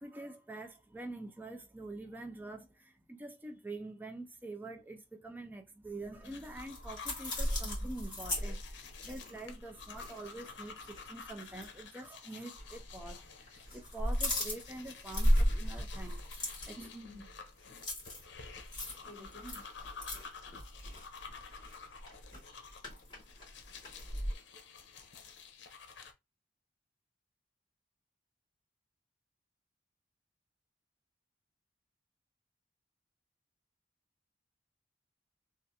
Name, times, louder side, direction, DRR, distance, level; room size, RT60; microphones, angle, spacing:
voice 1, 0.0-16.2 16.6-16.9, right 2 dB, 10° right, 0.4 m, -46 dB
sound 1, 6.1-10.5 10.8-11.0 11.5-11.7 12.6-13.2 13.5-24.3, equal, 25° left, 1.9 m, -36 dB
sound 2, 6.2-26.1, left 5 dB, 80° left, 0.7 m, -51 dB
3.3 x 2.5 x 2.7 m
head